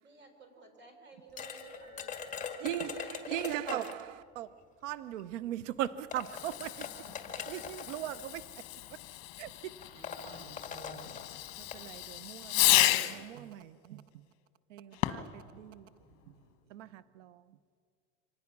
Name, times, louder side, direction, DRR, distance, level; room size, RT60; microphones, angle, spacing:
voice 1, 0.0-2.5, right 4 dB, 30° right, 4.1 m, -55 dB
sound 1, 1.4-4.1 5.2-5.3 5.8-8.0 8.9-9.1 9.4-9.5 9.8-11.8, left 6 dB, 20° left, 1.9 m, -42 dB
voice 2, 2.6-4.5 4.8-6.9 7.5-8.5 9.4-9.8 11.6-12.5 12.9-14.2 14.7-15.9 16.3-16.4 16.7-17.4, right 12 dB, 85° right, 0.9 m, -39 dB
Fireworks, 6.2-13.3 14.9-15.4, left 17 dB, 50° left, 1.3 m, -32 dB
voice 3, 6.7-7.3 9.9-11.2 16.0-16.1 16.4-16.8, right 1 dB, 60° right, 5.1 m, -54 dB
25.5 x 19.0 x 6.1 m
supercardioid pair, 130°, 36 cm